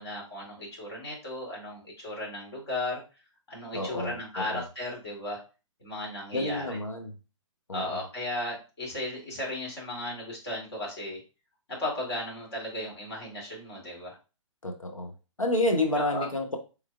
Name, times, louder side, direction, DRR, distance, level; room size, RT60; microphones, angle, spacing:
voice 1, 0.0-3.0 3.5-5.4 5.8-6.8 7.7-11.2 11.7-14.2 16.0-16.3, left 1 dB, 50° left, -3 dB, 2.4 m, -35 dB
voice 2, 3.7-4.6 6.3-7.1 7.7-7.8 14.6-15.1 15.4-16.6, left 1 dB, 90° left, 3 dB, 0.9 m, -29 dB
4.5 x 3.5 x 2.3 m, 0.31 s
figure-of-eight pair, 125°, 17 cm